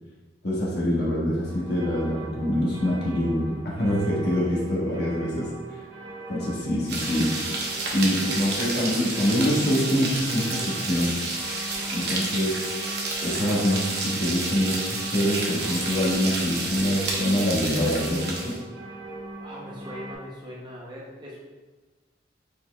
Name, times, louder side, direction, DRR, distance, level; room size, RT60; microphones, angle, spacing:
voice 1, 0.4-5.8 6.3-7.3 7.9-11.2 11.9-12.6 13.2-18.6, equal, 60° left, -6 dB, 1.3 m, -25 dB
sound 1, 1.4-20.1, right 2 dB, 40° right, 1.5 m, -40 dB
sound 2, 6.9-18.6, right 2 dB, 60° right, 0.9 m, -30 dB
voice 2, 11.8-12.1 19.4-21.4, left 1 dB, 25° right, -5 dB, 0.7 m, -41 dB
5.3 x 4.4 x 2.2 m, 1.3 s
head